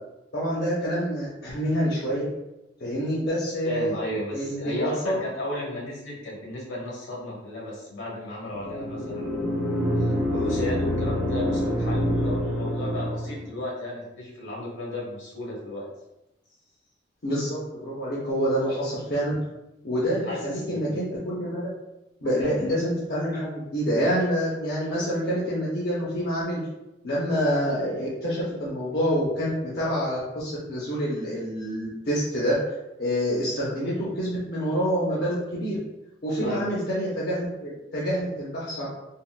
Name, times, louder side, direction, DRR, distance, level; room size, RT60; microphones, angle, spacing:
voice 1, 0.3-2.2 2.8-4.0 4.3-5.2 17.2-19.4 19.8-21.7 22.2-26.6 27.0-32.6 33.0-35.8 36.2-38.9, equal, 55° left, -7 dB, 0.6 m, -27 dB
voice 2, 3.6-9.7 10.0-15.9 20.2-21.0 22.4-22.7 36.4-36.7, left 1 dB, 75° left, -4 dB, 1.0 m, -34 dB
sound 1, 8.5-13.5, equal, 5° right, 0.6 m, -26 dB
3.5 x 2.2 x 2.3 m, 0.92 s
head